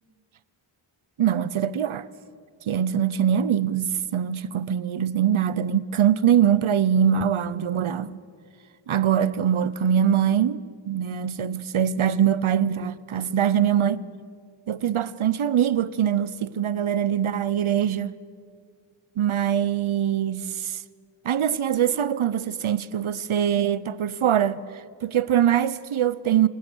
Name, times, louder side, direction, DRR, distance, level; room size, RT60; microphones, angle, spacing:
voice 1, 1.2-2.1 2.7-8.2 8.9-14.1 14.7-18.1 19.2-20.8 21.2-26.5, right 9 dB, 75° right, 1.0 m, -23 dB
29.0 x 26.5 x 6.4 m
cardioid pair, 60°, 49 cm